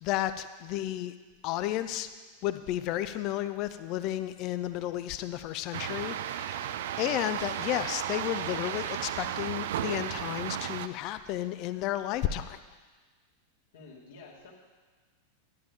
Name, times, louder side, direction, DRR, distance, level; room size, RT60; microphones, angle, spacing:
voice 1, 0.0-1.1 1.4-2.1 2.4-6.7 7.0-12.6, left 13 dB, 40° left, 12 dB, 0.5 m, -32 dB
sound 1, 5.7-10.9, right 11 dB, 55° right, 0.4 m, -34 dB
voice 2, 13.7-14.5, left 3 dB, 60° left, -3 dB, 2.1 m, -50 dB
12.5 x 10.0 x 3.5 m, 1.4 s
figure-of-eight pair, 90°, 0 cm